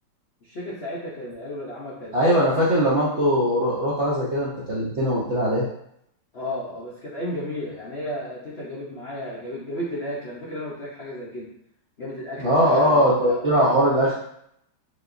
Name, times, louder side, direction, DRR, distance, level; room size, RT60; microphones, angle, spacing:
voice 1, 0.4-2.4 6.3-11.5 12.0-13.7, left 1 dB, 85° left, -6 dB, 0.5 m, -33 dB
voice 2, 2.1-5.6 12.4-14.2, equal, 60° right, -8 dB, 0.7 m, -20 dB
4.9 x 3.5 x 2.6 m, 0.73 s
omnidirectional pair, 2.3 m